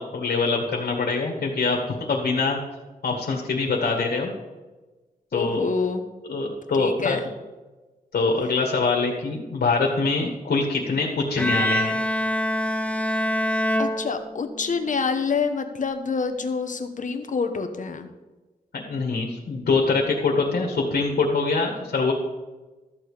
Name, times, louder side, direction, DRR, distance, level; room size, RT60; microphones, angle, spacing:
voice 1, 0.0-1.8 2.1-2.6 3.0-4.3 5.3-5.6 6.3-7.2 8.1-11.9 18.7-22.1, left 4 dB, 85° left, 0 dB, 1.9 m, -24 dB
voice 2, 5.3-6.0 6.3-6.5 6.8-7.2 8.4-8.5 13.8-18.1, left 5 dB, 55° left, 7 dB, 1.2 m, -27 dB
Bowed string instrument, 11.4-14.7, equal, 10° left, 0.8 m, -25 dB
13.5 x 7.8 x 5.0 m, 1.2 s
wide cardioid pair, 125°, 16 cm